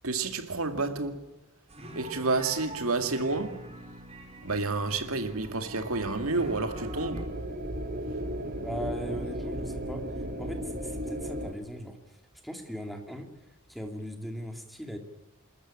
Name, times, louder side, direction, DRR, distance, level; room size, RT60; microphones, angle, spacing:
voice 1, 0.0-1.2 1.9-3.6 4.4-7.3, right 3 dB, 75° right, 2.2 m, -30 dB
sound 1, 1.7-7.2, right 1 dB, 30° right, 4.7 m, -45 dB
sound 2, 5.4-11.5, equal, 45° right, 1.6 m, -36 dB
voice 2, 8.6-15.0, equal, ahead, 2.5 m, -39 dB
27.5 x 14.0 x 8.8 m
head